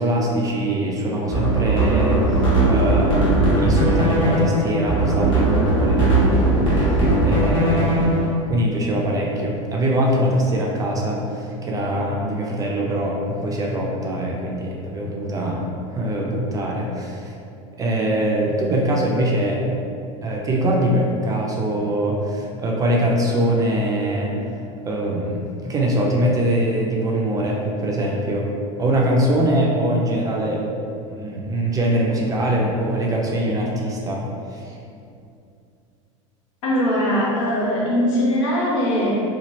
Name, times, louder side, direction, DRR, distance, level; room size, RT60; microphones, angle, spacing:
voice 1, 0.0-6.6 7.2-8.2 8.5-17.3 17.8-19.6 20.2-24.4 24.8-28.5 28.8-30.6 31.1-34.2 34.5-34.7, right 1 dB, 20° right, -2 dB, 0.4 m, -23 dB
sound 1, 1.2-8.3, right 2 dB, 30° left, 1.0 m, -18 dB
voice 2, 36.6-39.2, equal, 70° left, -6 dB, 1.0 m, -20 dB
2.9 x 2.4 x 3.0 m, 2.5 s
supercardioid pair, 110°, 16 cm